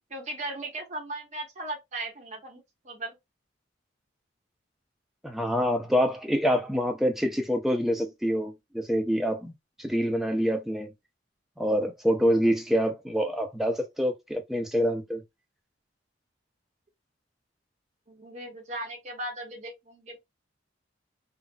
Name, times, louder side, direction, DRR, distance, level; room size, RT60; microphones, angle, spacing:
voice 1, 0.1-2.6 2.8-3.2 18.1-20.2, right 2 dB, 40° right, 0.8 m, -37 dB
voice 2, 5.2-9.5 9.8-10.9 11.6-15.2, equal, ahead, 0.5 m, -26 dB
3.9 x 2.0 x 2.3 m
head